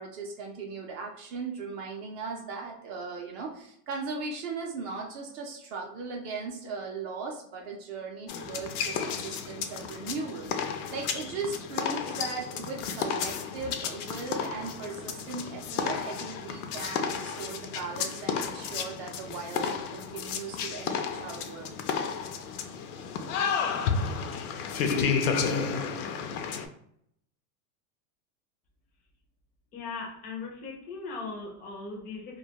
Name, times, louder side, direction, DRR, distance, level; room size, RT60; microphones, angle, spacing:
voice 1, 0.0-21.7, right 4 dB, 40° right, 1 dB, 0.4 m, -38 dB
sound 1, 8.3-26.7, left 6 dB, 80° left, 0.5 m, -32 dB
voice 2, 29.7-32.4, left 4 dB, 20° left, 0 dB, 0.4 m, -38 dB
2.2 x 2.2 x 2.8 m, 0.71 s
supercardioid pair, 145°, 44 cm